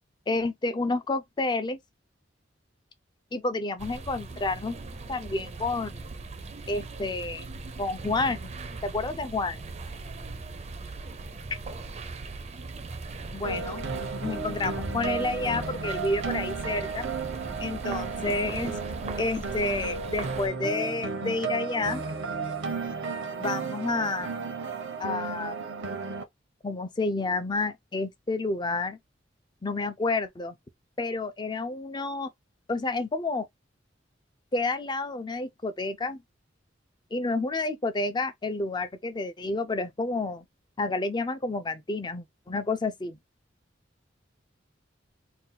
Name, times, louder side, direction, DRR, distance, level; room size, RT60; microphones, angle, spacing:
voice 1, 0.3-1.8 3.3-4.8 5.1-6.1 6.7-7.5 7.8-8.6 8.8-9.6 13.3-13.8 14.2-17.1 17.6-18.7 19.2-22.0 23.3-24.3 25.0-25.6 26.6-29.0 29.6-30.5 31.0-32.3 32.7-33.5 34.5-36.2 37.1-40.4 40.8-43.2, left 3 dB, 25° left, 0.4 m, -30 dB
sound 1, 3.8-20.5, right 3 dB, 35° right, 0.5 m, -39 dB
sound 2, 13.4-26.2, right 4 dB, 90° right, 0.8 m, -33 dB
2.6 x 2.2 x 3.9 m
head